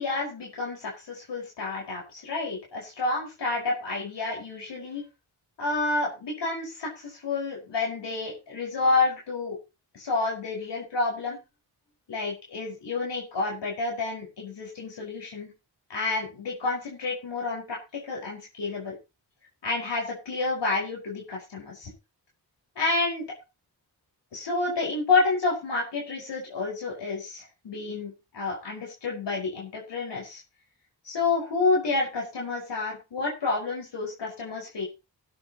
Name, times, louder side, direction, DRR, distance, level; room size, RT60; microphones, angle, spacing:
voice 1, 0.0-5.0 5.6-9.6 9.9-11.4 12.1-15.5 15.9-19.0 19.6-21.9 22.8-23.3 24.3-30.4 31.0-34.8, left 3 dB, 85° left, -2 dB, 5.2 m, -29 dB
18.5 x 9.3 x 3.0 m, 0.27 s
cardioid pair, 70°, 41 cm